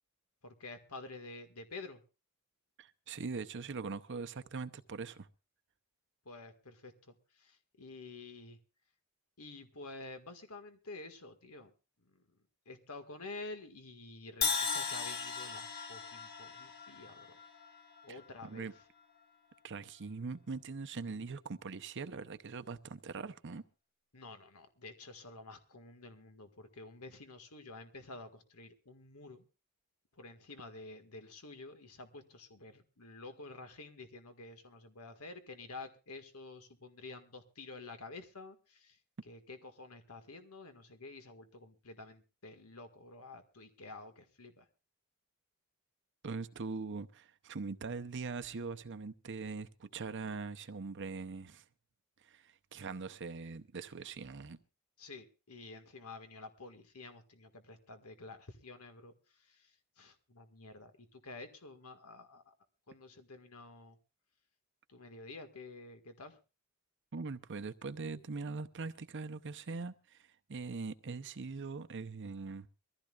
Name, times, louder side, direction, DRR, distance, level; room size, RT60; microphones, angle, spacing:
voice 1, 0.4-2.0 6.2-8.6 9.4-11.7 12.0-12.2 12.6-17.4 18.0-18.7 24.1-29.4 30.2-39.0 39.2-44.6 55.0-59.1 59.4-62.5 62.9-64.0 64.9-66.4, left 3 dB, 85° left, 1.8 m, -50 dB
voice 2, 2.8-5.3 18.1-18.7 19.6-23.6 46.2-51.6 52.2-54.6 67.1-72.7, right 4 dB, 55° right, 0.7 m, -42 dB
Crash cymbal, 14.4-18.4, left 5 dB, 45° left, 2.6 m, -37 dB
23.5 x 15.0 x 2.4 m
head